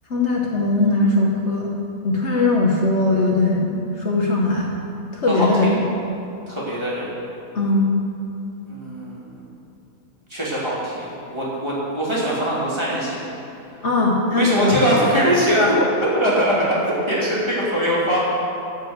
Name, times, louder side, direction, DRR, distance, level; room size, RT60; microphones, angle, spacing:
voice 1, 0.1-1.7 2.0-4.7 5.1-5.7 7.5-7.9 13.8-14.7 15.5-15.7, left 2 dB, 55° left, -1 dB, 1.3 m, -19 dB
voice 2, 5.3-5.7 6.5-7.1 8.7-9.3 10.3-13.3 14.3-15.8 16.0-18.2, equal, 20° right, -8 dB, 2.7 m, -22 dB
13.0 x 5.1 x 7.9 m, 2.7 s
omnidirectional pair, 1.5 m